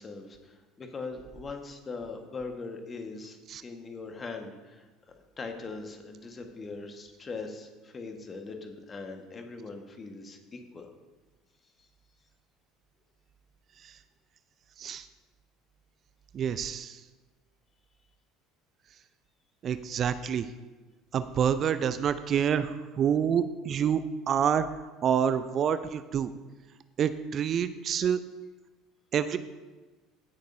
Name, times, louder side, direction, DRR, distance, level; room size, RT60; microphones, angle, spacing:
voice 1, 0.0-4.9 5.4-10.9 11.8-11.9, left 3 dB, 30° left, 5 dB, 1.4 m, -41 dB
voice 2, 16.3-17.0 19.6-20.5 21.1-24.0 24.3-24.7 25.0-26.3 27.0-28.2 29.1-29.4, right 8 dB, 45° right, 12 dB, 0.4 m, -27 dB
17.0 x 6.6 x 2.7 m, 1.2 s
figure-of-eight pair, 65°, 0 cm